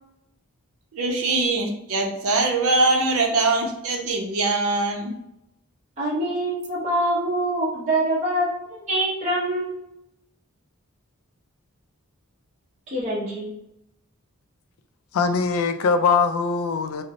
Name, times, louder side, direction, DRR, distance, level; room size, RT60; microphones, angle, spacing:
voice 1, 0.9-5.1, right 3 dB, 75° right, 0.6 m, -22 dB
voice 2, 6.0-9.9 12.9-13.5, right 1 dB, 30° right, 0.7 m, -25 dB
voice 3, 15.1-17.0, left 5 dB, 75° left, 0.3 m, -21 dB
4.1 x 2.0 x 2.6 m
head